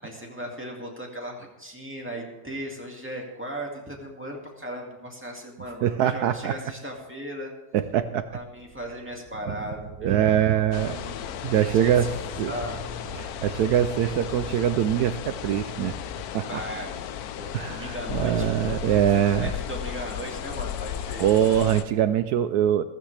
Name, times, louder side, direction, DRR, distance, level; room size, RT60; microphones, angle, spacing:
voice 1, 0.0-7.5 8.3-10.5 10.8-11.3 11.5-11.9 12.4-12.8 16.5-18.7 19.4-21.2, equal, 5° right, -1 dB, 2.0 m, -37 dB
voice 2, 5.8-6.6 7.7-8.3 9.5-9.6 10.0-11.0 11.4-12.1 12.4-12.6 13.1-15.9 16.3-16.7 17.5-19.5 21.2-22.8, right 10 dB, 75° right, 12 dB, 0.9 m, -23 dB
sound 1, 8.4-16.2, right 3 dB, 40° right, 1.1 m, -43 dB
sound 2, 10.7-21.8, left 9 dB, 70° left, 0.9 m, -35 dB
14.5 x 14.5 x 3.3 m, 1.0 s
omnidirectional pair, 2.0 m